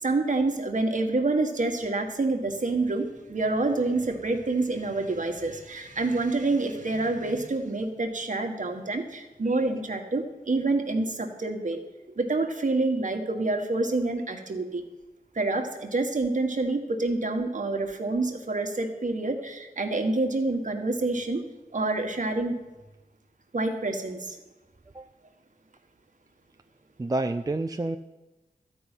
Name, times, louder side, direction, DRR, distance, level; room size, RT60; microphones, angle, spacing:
voice 1, 0.0-11.8 12.2-14.8 15.3-21.4 21.7-22.6 23.5-24.4, right 2 dB, 50° right, 4 dB, 1.6 m, -27 dB
voice 2, 27.0-28.0, right 2 dB, 20° right, 7 dB, 0.5 m, -28 dB
13.0 x 5.6 x 9.1 m, 1.1 s
wide cardioid pair, 85°, 16 cm